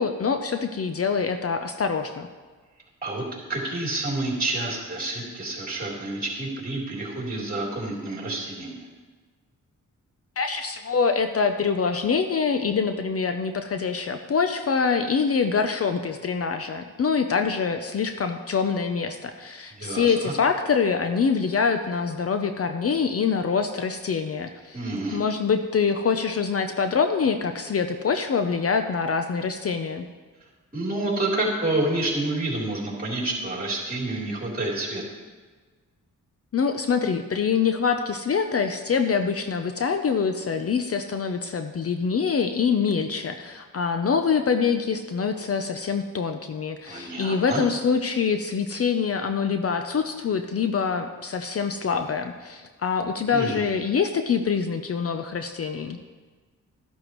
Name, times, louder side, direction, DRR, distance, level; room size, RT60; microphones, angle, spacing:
voice 1, 0.0-2.3 10.4-24.8 25.1-30.1 36.5-56.0, left 5 dB, 45° left, 7 dB, 0.6 m, -25 dB
voice 2, 3.0-8.8 19.8-20.3 24.7-25.2 30.7-35.0 46.9-47.6 53.3-53.6, right 2 dB, 25° right, -4 dB, 3.5 m, -28 dB
12.5 x 11.5 x 3.1 m, 1.4 s
cardioid pair, 95°, 32 cm